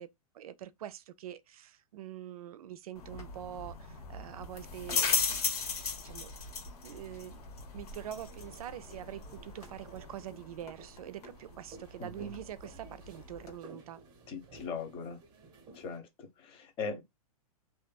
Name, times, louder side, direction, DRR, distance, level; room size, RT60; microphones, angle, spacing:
voice 1, 0.0-5.6 6.0-6.3 6.8-7.4 7.7-14.0, right 11 dB, 70° right, 0.4 m, -45 dB
sound 1, 2.9-13.6, left 5 dB, 80° left, 1.1 m, -38 dB
sound 2, 8.1-16.0, right 3 dB, 25° right, 0.8 m, -55 dB
voice 2, 12.0-12.3 14.3-15.2 15.7-17.0, left 5 dB, 30° left, 0.9 m, -40 dB
2.6 x 2.5 x 2.2 m
hypercardioid pair, 130°, 19 cm